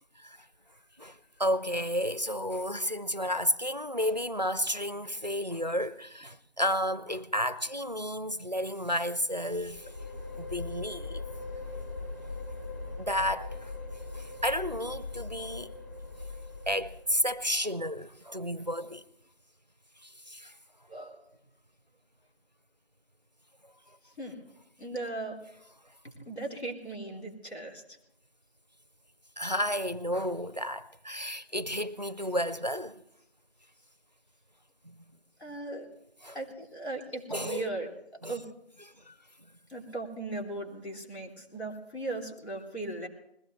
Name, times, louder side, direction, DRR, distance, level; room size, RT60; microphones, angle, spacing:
voice 1, 1.0-9.9 10.4-11.2 13.0-13.7 14.1-15.7 16.7-19.0 20.0-20.5 29.4-33.0 34.8-35.0 36.2-36.4 37.3-37.7 38.2-38.4 38.9-39.1, equal, 45° right, 0.4 m, -32 dB
sound 1, 9.5-17.4, left 3 dB, 15° left, 1.9 m, -40 dB
voice 2, 20.9-21.2 24.2-24.5 24.8-25.4 26.0-28.0 31.5-31.6 35.4-35.9 36.3-37.9 38.3-38.4 39.7-43.1, right 2 dB, 90° left, 3.5 m, -38 dB
21.0 x 16.0 x 3.2 m
figure-of-eight pair, 170°, 32 cm